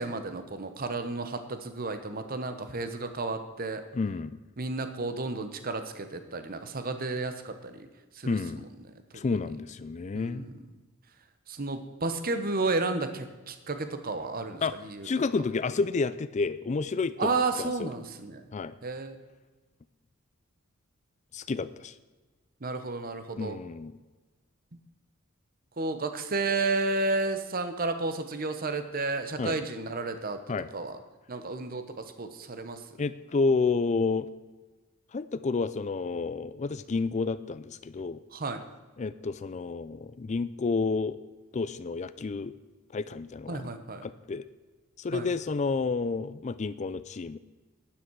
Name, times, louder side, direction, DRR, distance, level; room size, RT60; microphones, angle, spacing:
voice 1, 0.0-3.8 4.6-7.9 8.1-8.6 9.3-9.4 10.1-10.5 11.5-15.1 17.2-18.4 18.8-19.2 22.6-23.6 25.8-30.4 30.7-31.0 31.3-32.8 38.3-38.6 43.5-44.0 45.1-45.3, right 3 dB, 45° right, 9 dB, 1.0 m, -32 dB
voice 2, 3.9-4.3 8.2-8.6 9.1-10.5 14.6-14.7 15.0-17.3 17.6-17.9 18.5-18.8 21.3-21.9 23.4-24.0 29.4-29.6 30.5-30.7 33.0-34.3 35.1-38.2 39.0-41.2 41.5-42.5 42.9-43.7 44.0-44.4 45.0-47.4, left 4 dB, 35° left, 14 dB, 0.4 m, -30 dB
12.5 x 10.0 x 4.7 m, 1.2 s
head